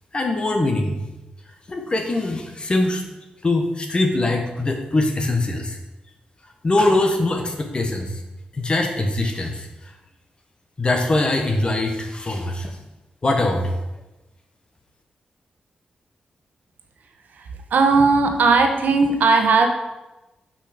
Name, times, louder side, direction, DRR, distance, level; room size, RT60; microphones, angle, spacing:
voice 1, 0.1-1.0 1.7-3.0 3.4-5.8 6.4-8.2 8.5-9.9 10.8-12.8 13.2-13.8, left 2 dB, 35° left, 3 dB, 1.2 m, -22 dB
voice 2, 17.3-19.7, right 4 dB, 85° right, 4 dB, 0.9 m, -17 dB
6.0 x 5.6 x 5.1 m, 1.0 s
cardioid pair, 90°, 3 cm